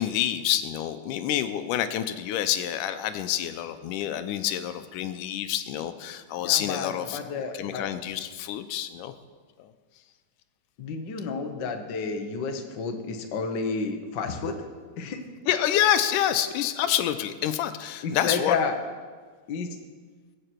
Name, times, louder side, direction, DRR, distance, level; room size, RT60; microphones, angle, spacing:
voice 1, 0.0-9.1 9.6-9.7 15.5-18.6, left 11 dB, 85° left, 10 dB, 2.2 m, -27 dB
voice 2, 6.4-7.8 10.8-14.6 15.0-15.2 18.0-18.7 19.5-19.7, left 5 dB, 60° left, 4 dB, 1.1 m, -30 dB
22.0 x 7.8 x 4.5 m, 1.5 s
omnidirectional pair, 3.7 m